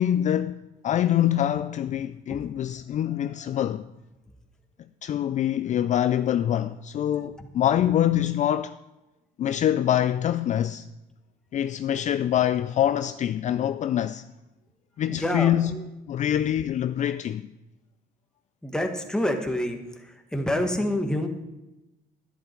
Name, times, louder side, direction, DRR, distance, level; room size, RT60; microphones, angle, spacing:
voice 1, 0.0-3.9 5.0-8.8 9.4-10.9 11.5-14.2 15.0-15.7 16.1-17.5, left 11 dB, 45° left, 0.4 m, -25 dB
voice 2, 15.1-15.8 18.6-21.3, left 1 dB, 5° left, 1.5 m, -28 dB
11.0 x 10.5 x 4.5 m
cardioid pair, 110°, 17 cm